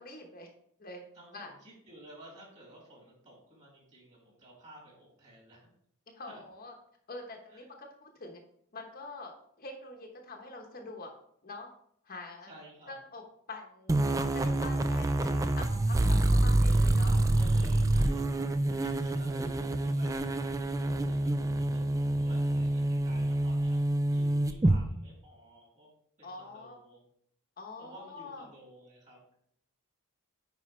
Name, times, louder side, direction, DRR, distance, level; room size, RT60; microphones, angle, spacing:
voice 1, 0.0-0.5 0.8-1.0 1.3-1.5 6.1-6.7 7.1-8.4 8.7-11.1 11.4-11.7 12.0-12.5 12.9-14.0 14.3-17.1 19.0-19.4 26.2-26.8 27.6-28.5, left 2 dB, 40° left, 1 dB, 1.0 m, -45 dB
voice 2, 1.1-5.7 6.2-6.4 7.5-7.6 12.5-12.9 16.5-23.8 24.1-25.9 26.2-27.0 27.8-29.4, right 1 dB, 30° right, -3 dB, 3.3 m, -53 dB
sound 1, 13.9-24.8, right 1 dB, 15° right, 0.3 m, -27 dB
9.4 x 4.8 x 3.2 m, 0.68 s
head